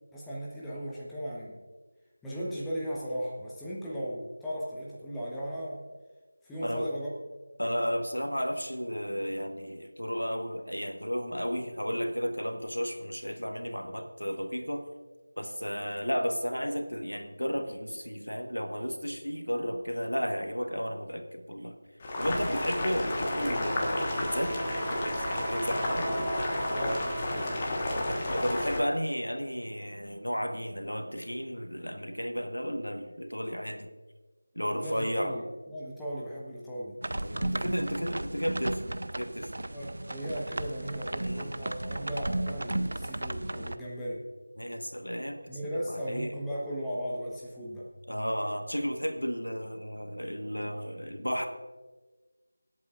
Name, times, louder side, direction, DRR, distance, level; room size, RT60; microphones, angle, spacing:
voice 1, 0.1-1.6 2.2-5.8 6.4-7.1 26.7-27.8 34.8-37.0 37.4-37.9 39.7-44.2 45.5-47.9, equal, 5° left, -7 dB, 1.1 m, -37 dB
voice 2, 7.6-14.8 15.4-21.7 22.2-26.1 28.1-33.9 34.5-35.3 37.1-38.9 39.2-39.5 41.2-41.5 44.6-45.4 45.7-46.3 48.1-51.5, equal, 90° left, 6 dB, 1.3 m, -33 dB
Boiling, 22.0-28.8, left 1 dB, 25° left, 1.3 m, -31 dB
Wind instrument woodwind instrument, 23.2-27.4, right 2 dB, 35° right, 1.5 m, -38 dB
sound 1, 37.0-43.8, right 1 dB, 60° right, 0.5 m, -34 dB
24.5 x 8.4 x 2.5 m, 1.3 s
figure-of-eight pair, 165°, 0 cm